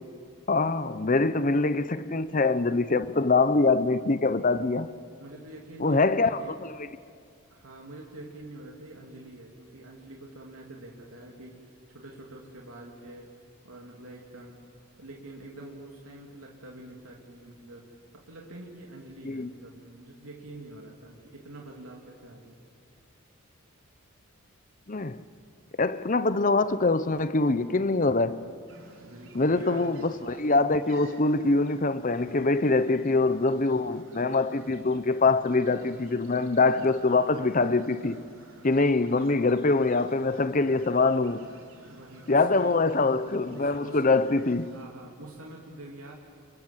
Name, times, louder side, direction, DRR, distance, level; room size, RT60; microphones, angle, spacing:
voice 1, 0.5-4.9 5.8-6.7 19.2-19.5 24.9-25.2 25.8-28.5 29.3-38.2 38.6-41.4 42.3-44.7, left 3 dB, 35° left, 0.8 m, -24 dB
voice 2, 5.2-6.6 7.5-13.3 13.6-14.6 15.0-17.9 18.1-22.6 29.0-29.9 41.8-42.8 43.2-44.0 44.6-46.1, right 1 dB, 80° right, 3.2 m, -46 dB
sound 1, 28.7-44.8, right 2 dB, 65° right, 3.6 m, -53 dB
30.0 x 25.0 x 7.5 m
head